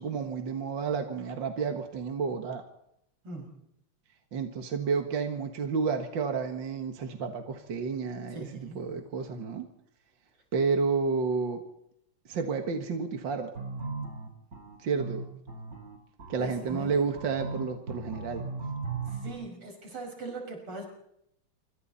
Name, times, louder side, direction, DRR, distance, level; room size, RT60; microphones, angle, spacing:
voice 1, 0.0-2.6 4.3-9.7 10.5-11.6 12.3-13.5 14.8-15.2 16.3-18.4, right 5 dB, 60° right, 5 dB, 2.3 m, -31 dB
voice 2, 8.3-8.8 16.4-16.9 19.0-20.9, right 2 dB, 80° right, 3 dB, 6.7 m, -40 dB
sound 1, 13.5-19.3, right 4 dB, 40° right, 4.9 m, -38 dB
27.0 x 25.0 x 4.2 m, 0.77 s
omnidirectional pair, 2.4 m